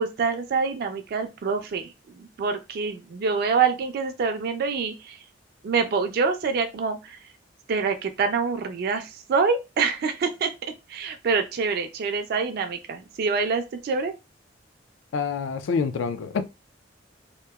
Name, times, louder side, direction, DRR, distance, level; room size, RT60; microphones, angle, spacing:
voice 1, 0.0-1.9 2.2-5.2 5.6-7.2 7.7-10.5 10.9-14.1, right 5 dB, 55° right, 0.3 m, -26 dB
voice 2, 15.1-16.4, left 5 dB, 80° left, 0.3 m, -26 dB
2.9 x 2.0 x 2.2 m
head